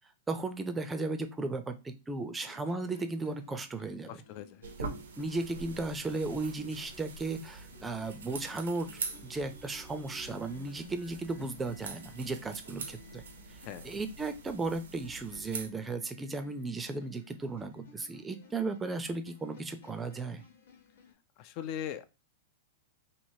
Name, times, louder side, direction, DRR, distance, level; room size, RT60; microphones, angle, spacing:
voice 1, 0.3-4.2 4.8-13.2 13.5-20.4, right 3 dB, 15° right, 8 dB, 0.5 m, -36 dB
sound 1, 2.4-21.1, left 4 dB, 85° left, 0.9 m, -56 dB
voice 2, 4.1-4.7 13.6-13.9 21.4-22.1, left 10 dB, 45° left, 12 dB, 0.4 m, -40 dB
sound 2, 4.6-15.7, right 4 dB, 80° right, 0.7 m, -44 dB
3.1 x 2.8 x 2.7 m, 0.27 s
hypercardioid pair, 115°, 0 cm